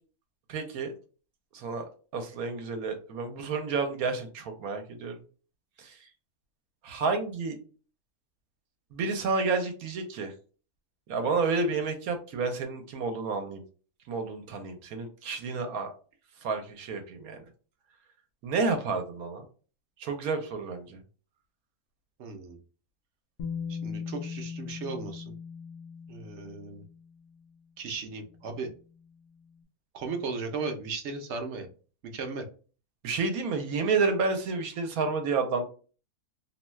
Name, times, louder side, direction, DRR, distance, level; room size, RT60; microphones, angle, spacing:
voice 1, 0.5-0.9 1.5-5.2 5.8-6.0 6.8-7.6 8.9-10.3 11.1-13.6 14.1-15.9 16.4-17.4 18.4-19.4 20.0-21.0 33.0-35.6, right 4 dB, 75° right, 6 dB, 1.1 m, -30 dB
voice 2, 22.2-22.6 23.7-25.3 26.1-26.8 27.8-28.7 29.9-31.7 32.0-32.5, right 4 dB, 60° right, 4 dB, 0.8 m, -36 dB
Bass guitar, 23.4-27.3 28.5-28.6, left 6 dB, 65° left, 0.9 m, -39 dB
2.7 x 2.2 x 3.1 m, 0.38 s
omnidirectional pair, 1.6 m